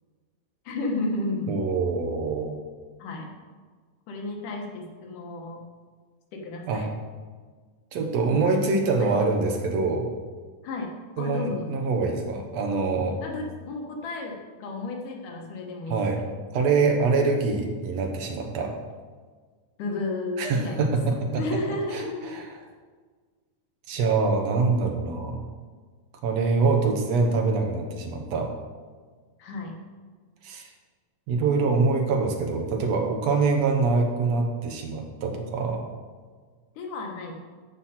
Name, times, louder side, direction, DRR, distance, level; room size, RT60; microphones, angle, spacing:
voice 1, 0.7-1.6 3.0-3.3 4.1-5.6 6.3-6.9 8.4-8.7 9.0-9.3 10.6-10.9 11.2-11.8 13.2-16.3 19.8-20.9 21.4-22.4 29.4-29.8 36.8-37.3, left 2 dB, 85° left, 0 dB, 2.9 m, -33 dB
voice 2, 1.5-2.6 6.7-6.9 7.9-10.1 11.2-13.2 15.9-16.2 16.5-18.7 20.4-21.4 21.9-22.4 23.9-25.4 26.2-28.5 30.4-30.7 31.3-35.8, right 4 dB, 65° right, 3 dB, 2.1 m, -24 dB
13.5 x 5.6 x 4.3 m, 1.5 s
omnidirectional pair, 3.6 m